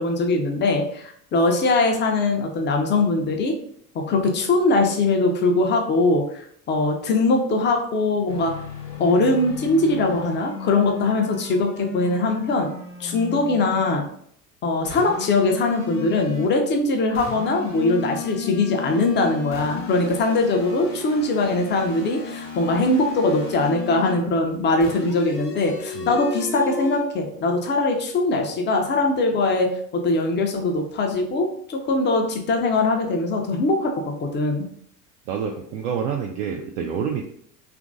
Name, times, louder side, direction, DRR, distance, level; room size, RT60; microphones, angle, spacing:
voice 1, 0.0-3.6 3.9-8.5 9.0-12.7 13.0-14.0 14.6-33.9 34.2-34.7, left 2 dB, 25° left, 3 dB, 0.5 m, -21 dB
sound 1, 8.3-14.0 14.9-16.6 17.1-24.2 24.8-27.0, left 5 dB, 85° left, 0.8 m, -35 dB
voice 2, 35.3-37.3, right 7 dB, 55° right, 1 dB, 0.5 m, -28 dB
2.9 x 2.5 x 2.6 m, 0.65 s
hypercardioid pair, 75°, 47 cm